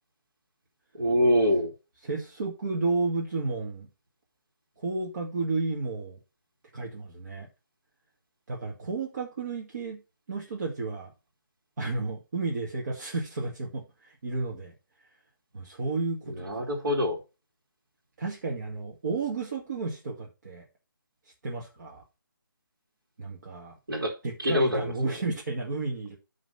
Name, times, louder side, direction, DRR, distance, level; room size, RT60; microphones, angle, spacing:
voice 1, 0.9-1.7 16.3-17.2 23.9-24.1 24.4-25.2, left 1 dB, 75° right, 2.7 m, -25 dB
voice 2, 2.0-3.9 4.8-6.2 6.7-7.5 8.5-10.0 10.3-11.1 11.8-14.7 15.5-16.7 18.2-20.7 21.4-22.0 23.2-23.7 24.2-26.2, right 3 dB, 50° right, 2.1 m, -32 dB
9.4 x 3.9 x 5.6 m
hypercardioid pair, 165°, 11 cm